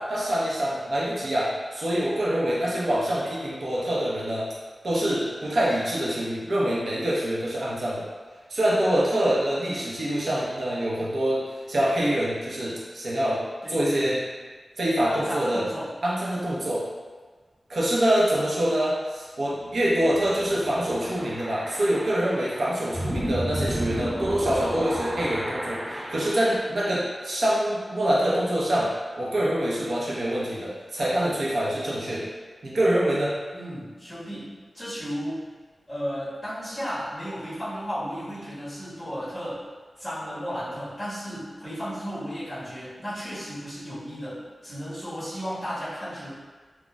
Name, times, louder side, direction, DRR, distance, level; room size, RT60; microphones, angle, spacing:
voice 1, 0.0-4.5 4.8-8.1 8.5-13.4 13.7-14.2 14.8-15.6 16.0-16.8 17.7-32.3 32.6-33.3, right 1 dB, 70° right, -6 dB, 0.7 m, -25 dB
voice 2, 13.6-14.1 15.1-15.9 33.5-35.4 35.9-39.6 40.0-46.3, equal, 10° left, -12 dB, 1.3 m, -34 dB
sound 1, 19.6-26.6, right 1 dB, 20° right, 0.5 m, -32 dB
4.0 x 2.2 x 2.2 m, 1.4 s
wide cardioid pair, 100°, 0 cm